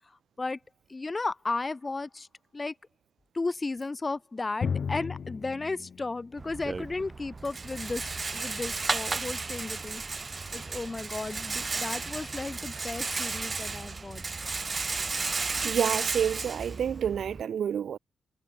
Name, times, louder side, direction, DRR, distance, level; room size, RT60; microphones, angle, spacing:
voice 1, 0.9-2.3 2.5-2.7 3.3-10.0 10.5-14.4, left 3 dB, 20° left, 0.8 m, -34 dB
Drum, 4.6-8.1, left 6 dB, 40° left, 6.1 m, -36 dB
Rattle, 6.4-17.4, right 4 dB, 25° right, 3.9 m, -34 dB
voice 2, 15.6-18.0, right 8 dB, 60° right, 1.8 m, -28 dB
wide cardioid pair, 180°, 0 cm